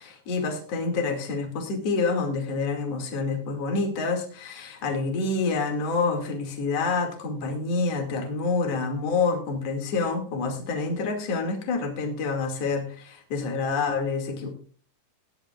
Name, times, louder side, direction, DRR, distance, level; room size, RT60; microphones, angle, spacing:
voice 1, 0.0-14.5, left 4 dB, 45° left, 2 dB, 3.0 m, -27 dB
20.5 x 10.5 x 2.4 m, 0.42 s
omnidirectional pair, 4.8 m